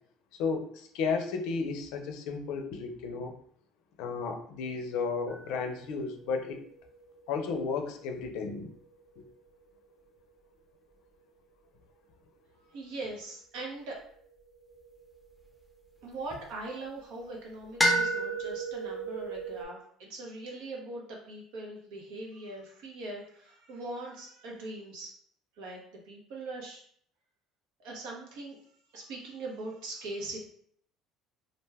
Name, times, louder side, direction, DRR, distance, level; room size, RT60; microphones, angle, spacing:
voice 1, 0.4-3.3 4.0-6.6 7.3-8.7 9.2-9.3, left 5 dB, 80° left, 5 dB, 0.4 m, -33 dB
sound 1, 5.3-9.6 13.9-16.4 17.8-19.7, right 1 dB, ahead, 0.7 m, -34 dB
voice 2, 12.7-14.0 16.0-25.1 25.6-25.8 26.1-26.8 27.8-28.6 28.9-30.4, right 2 dB, 85° right, -1 dB, 0.9 m, -41 dB
2.4 x 2.2 x 3.3 m, 0.64 s
cardioid pair, 125°, 0 cm